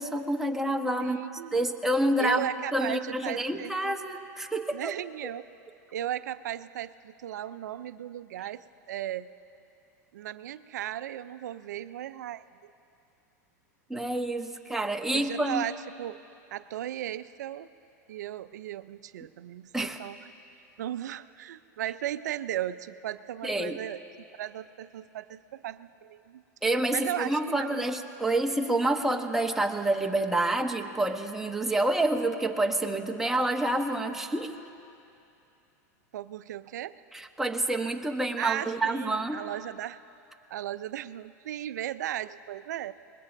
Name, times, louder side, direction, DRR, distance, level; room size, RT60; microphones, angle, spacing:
voice 1, 0.0-4.9 13.9-15.6 19.7-20.0 23.4-23.8 26.6-34.6 37.1-39.4, right 1 dB, 5° right, 3 dB, 1.0 m, -28 dB
voice 2, 1.0-1.6 2.2-4.0 4.7-5.5 5.9-9.3 10.1-12.4 15.1-16.2 16.5-17.7 18.1-20.2 20.8-24.0 24.3-26.4 26.9-27.7 36.1-37.0 38.4-40.0 40.5-42.9, right 12 dB, 80° right, 14 dB, 0.5 m, -36 dB
25.5 x 21.0 x 2.6 m, 2.7 s
hypercardioid pair, 110°, 9 cm